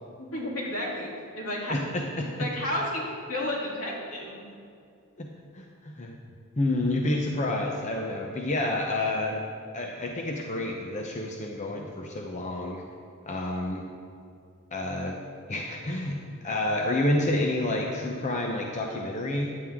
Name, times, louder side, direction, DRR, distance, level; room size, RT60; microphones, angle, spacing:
voice 1, 0.3-1.1 1.3-1.7 2.4-3.0 3.3-4.4, left 1 dB, 80° left, -4 dB, 3.1 m, -31 dB
voice 2, 1.7-2.5 5.2-5.3 5.5-6.2 6.6-9.4 9.7-12.8 13.3-13.8 14.7-15.2 15.5-19.5, left 1 dB, 35° left, 1 dB, 0.8 m, -29 dB
14.5 x 9.8 x 3.7 m, 2.4 s
head